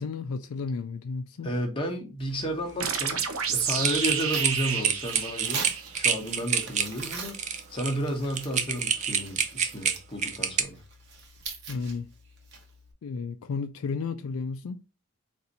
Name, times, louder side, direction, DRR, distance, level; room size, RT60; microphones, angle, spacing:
voice 1, 0.0-1.5 11.7-12.1 13.0-14.8, left 4 dB, 70° left, 0.3 m, -33 dB
voice 2, 1.4-5.7 5.9-7.4 7.7-10.8, equal, 25° left, 1.0 m, -32 dB
Tearing, 2.2-12.9, right 4 dB, 50° right, 1.0 m, -43 dB
sound 1, 2.8-6.3, right 7 dB, 65° right, 0.7 m, -30 dB
sound 2, 3.7-10.6, right 7 dB, 30° right, 0.4 m, -27 dB
4.1 x 2.6 x 4.0 m
head